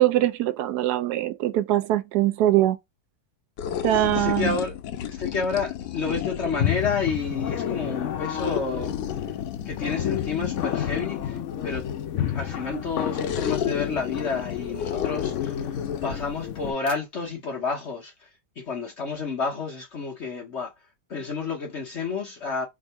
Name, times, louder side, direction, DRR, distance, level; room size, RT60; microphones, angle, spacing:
voice 1, 0.0-2.8 3.8-4.5, right 13 dB, 70° right, 1.0 m, -22 dB
sound 1, 3.6-6.9 8.4-12.2 13.1-16.1, left 10 dB, 75° left, 1.2 m, -33 dB
voice 2, 3.9-4.7 5.1-8.9 9.7-11.8 12.3-18.3 18.6-20.7 21.1-22.7, left 5 dB, 50° left, 0.8 m, -30 dB
sound 2, 6.6-16.7, left 9 dB, 90° left, 0.6 m, -30 dB
3.5 x 2.7 x 4.4 m
omnidirectional pair, 2.0 m